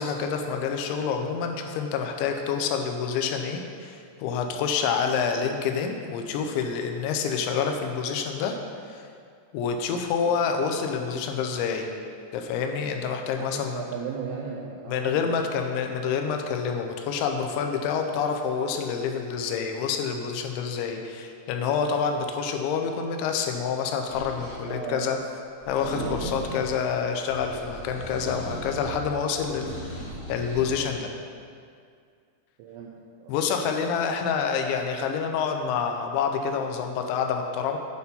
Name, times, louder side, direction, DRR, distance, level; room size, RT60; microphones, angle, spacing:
voice 1, 0.0-8.5 8.9-9.1 9.5-11.9 12.3-13.8 14.9-25.2 25.7-31.1 33.3-37.8, left 6 dB, 85° left, 4 dB, 2.9 m, -27 dB
voice 2, 13.4-15.4 24.7-25.2 25.9-26.6 32.6-33.4, right 6 dB, 85° right, -2 dB, 2.2 m, -37 dB
sound 1, 24.1-24.6 25.6-26.7 27.3-29.0 29.4-30.7, right 1 dB, 70° right, 0.9 m, -37 dB
8.3 x 4.3 x 5.4 m, 2.2 s
omnidirectional pair, 5.2 m